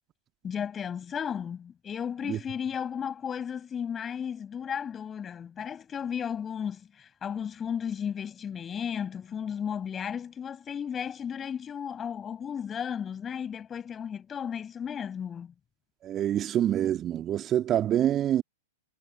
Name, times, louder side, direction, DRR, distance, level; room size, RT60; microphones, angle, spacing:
voice 1, 0.4-15.5, left 8 dB, 20° left, 6.3 m, -34 dB
voice 2, 16.0-18.4, right 11 dB, 25° right, 1.9 m, -26 dB
figure-of-eight pair, 105°, 0 cm